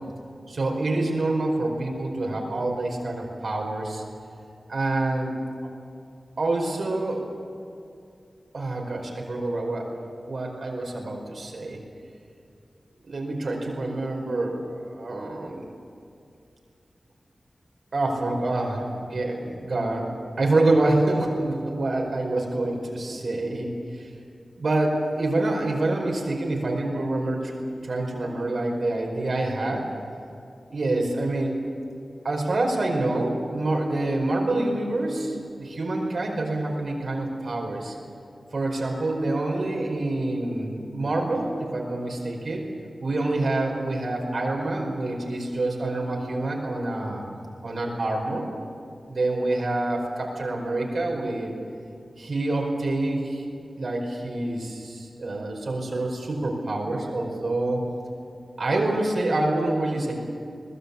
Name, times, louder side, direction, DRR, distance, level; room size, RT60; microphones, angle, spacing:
voice 1, 0.5-4.0 4.7-5.3 6.4-7.2 8.5-9.9 10.3-11.8 13.0-15.6 17.9-20.1 20.4-24.1 24.6-29.9 30.7-31.5 32.2-37.9 38.5-42.6 43.0-47.2 47.6-48.5 49.1-51.5 52.2-53.4 53.8-57.8 58.6-60.1, right 2 dB, 70° right, 0 dB, 4.9 m, -26 dB
22.0 x 20.0 x 8.4 m, 2.4 s
wide cardioid pair, 90°, 0 cm